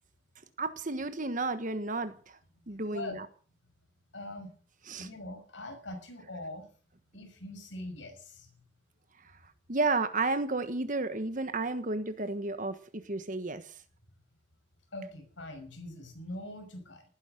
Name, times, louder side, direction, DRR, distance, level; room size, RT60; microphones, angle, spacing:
voice 1, 0.6-2.4 2.7-3.3 4.9-5.1 9.2-9.3 9.7-13.8, right 3 dB, 40° right, 10 dB, 1.3 m, -32 dB
voice 2, 4.1-4.5 5.0-6.7 7.1-8.5 14.9-17.0, left 1 dB, 70° left, 5 dB, 6.1 m, -42 dB
19.5 x 10.5 x 6.7 m, 0.43 s
head